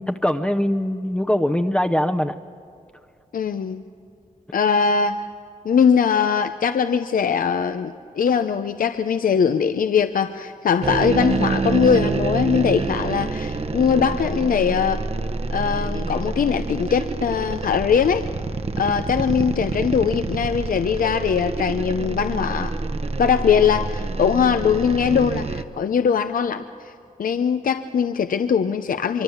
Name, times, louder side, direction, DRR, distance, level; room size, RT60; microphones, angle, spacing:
voice 1, 0.0-2.3, left 1 dB, 5° left, 5 dB, 0.7 m, -22 dB
voice 2, 3.3-3.8 4.5-5.2 5.6-15.1 15.5-18.2 18.8-22.7 23.2-26.9 27.2-29.2, left 7 dB, 75° left, 9 dB, 0.7 m, -21 dB
sound 1, 10.8-25.6, right 3 dB, 45° right, 1.0 m, -27 dB
24.5 x 24.5 x 7.2 m, 2.5 s
wide cardioid pair, 105°, 14 cm